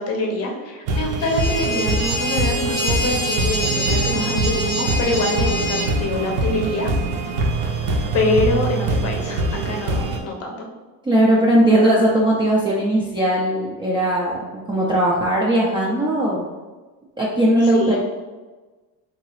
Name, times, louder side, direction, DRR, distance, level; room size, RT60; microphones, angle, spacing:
voice 1, 0.0-6.9 8.1-10.6 17.7-18.0, left 2 dB, 40° left, 1 dB, 0.6 m, -25 dB
sound 1, 0.9-10.2, right 2 dB, 80° right, 0.7 m, -24 dB
sound 2, 1.2-5.9, right 1 dB, 10° left, 0.8 m, -25 dB
voice 2, 11.0-16.5 17.2-18.0, right 1 dB, 15° right, -6 dB, 0.3 m, -18 dB
3.9 x 2.8 x 3.0 m, 1.3 s
cardioid pair, 155°, 39 cm